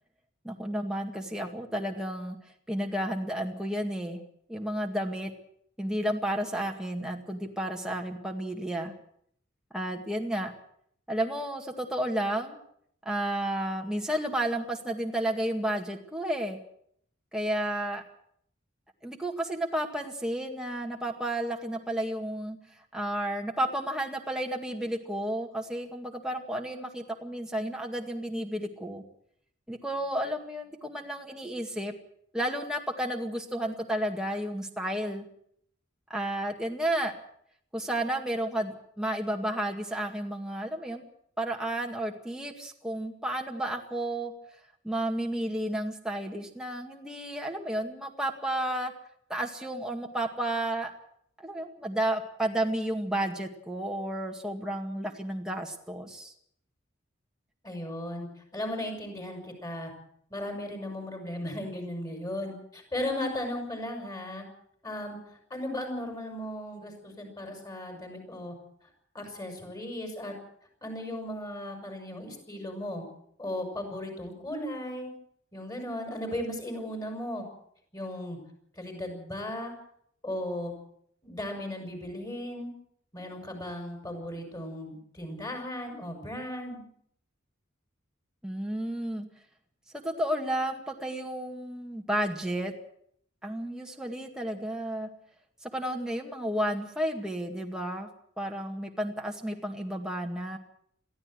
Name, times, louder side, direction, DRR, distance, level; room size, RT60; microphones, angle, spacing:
voice 1, 0.4-2.4 2.7-4.2 4.5-5.3 5.8-8.9 9.7-10.5 11.1-12.6 13.1-16.6 17.3-18.0 19.0-22.6 22.9-29.0 29.7-31.9 32.3-35.3 36.1-37.1 37.7-41.0 41.4-44.3 44.8-48.9 49.3-50.9 51.4-56.3 88.4-89.3 89.9-92.7 93.4-95.1 95.6-98.1 98.4-100.6, right 1 dB, 5° right, 1 dB, 2.0 m, -32 dB
voice 2, 57.6-59.9 60.3-64.4 64.8-68.5 69.1-70.3 70.8-73.0 73.4-75.1 75.5-77.4 77.9-78.4 78.8-79.7 80.2-80.7 81.2-82.7 83.1-86.9, left 1 dB, 20° left, 4 dB, 6.4 m, -36 dB
22.0 x 15.5 x 7.9 m, 0.67 s
head